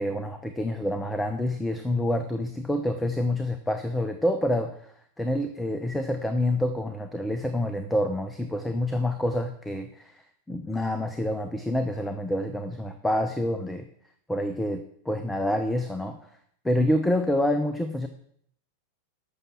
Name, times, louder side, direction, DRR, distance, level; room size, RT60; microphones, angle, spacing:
voice 1, 0.0-13.9 14.3-16.2 16.6-18.1, left 1 dB, 5° left, 8 dB, 0.9 m, -27 dB
11.0 x 6.9 x 7.4 m, 0.68 s
figure-of-eight pair, 90°, 0 cm